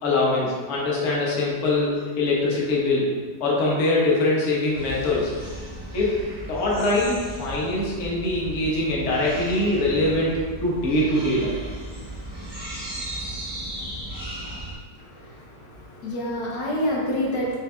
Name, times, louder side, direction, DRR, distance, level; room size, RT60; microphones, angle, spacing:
voice 1, 0.0-3.1 3.4-5.5 5.9-6.2 6.5-11.6, left 2 dB, 55° left, -5 dB, 1.0 m, -23 dB
sound 1, 4.7-14.7, right 1 dB, 40° right, 0.3 m, -36 dB
voice 2, 15.0-17.6, equal, 75° left, -4 dB, 1.4 m, -28 dB
5.1 x 3.5 x 2.2 m, 1.5 s
omnidirectional pair, 1.9 m